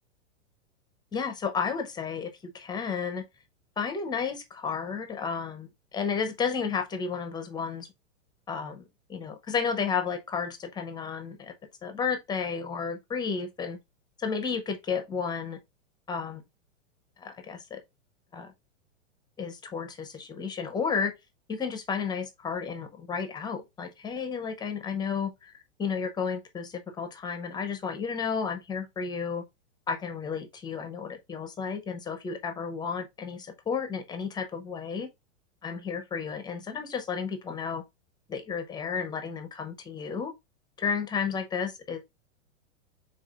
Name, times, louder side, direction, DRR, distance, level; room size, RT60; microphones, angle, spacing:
voice 1, 1.1-3.2 3.8-7.9 8.5-11.5 11.8-13.8 14.2-15.6 16.1-16.4 17.2-17.8 18.3-18.5 19.4-21.1 21.5-25.5 25.8-29.4 29.9-35.1 35.6-37.8 38.3-40.3 40.8-42.0, left 6 dB, 10° left, 0.7 m, -32 dB
4.7 x 3.8 x 2.4 m
hypercardioid pair, 140°, 38 cm